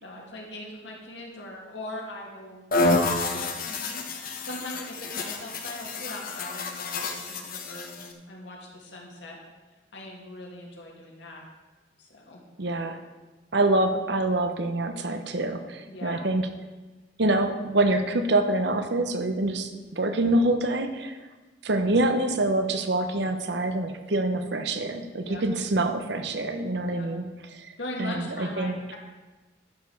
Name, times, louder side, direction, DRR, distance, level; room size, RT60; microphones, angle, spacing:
voice 1, 0.0-2.6 3.1-4.0 4.4-9.4 9.9-11.4 12.0-12.4 15.9-16.2 25.2-25.4 26.9-27.1 27.8-29.0, left 1 dB, 70° left, -2 dB, 2.3 m, -40 dB
sound 1, 2.7-8.1, left 2 dB, 45° left, 1.0 m, -29 dB
voice 2, 12.6-13.0 13.5-16.4 17.2-21.2 21.6-27.3 27.5-28.8, right 2 dB, 65° right, 7 dB, 0.9 m, -26 dB
11.5 x 5.3 x 6.3 m, 1.2 s
head